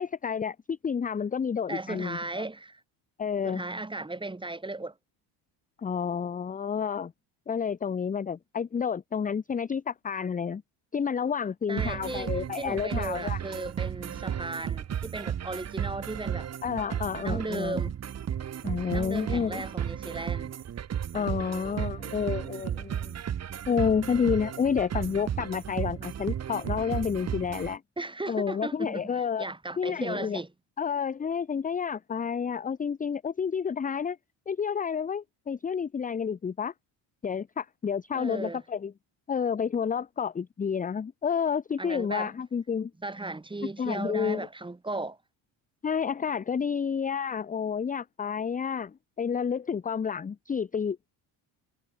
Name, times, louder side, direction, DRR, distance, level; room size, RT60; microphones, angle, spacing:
voice 1, 0.0-2.2 3.2-3.6 5.8-7.1 7.5-10.6 10.9-13.4 16.6-17.9 18.6-19.6 21.1-23.2 23.7-27.8 28.3-29.5 29.8-30.4 30.8-34.2 34.5-36.7 37.2-38.9 39.3-42.9 43.8-44.5 45.8-51.1, left 6 dB, 15° left, 0.6 m, -30 dB
voice 2, 1.7-2.8 3.4-4.9 11.7-16.5 17.2-17.9 18.9-20.5 28.0-30.5 38.1-38.6 41.8-42.3 43.0-45.2, right 2 dB, 10° right, 1.7 m, -36 dB
sound 1, 11.8-27.7, right 9 dB, 30° right, 1.0 m, -34 dB
cardioid pair, 100°, 48 cm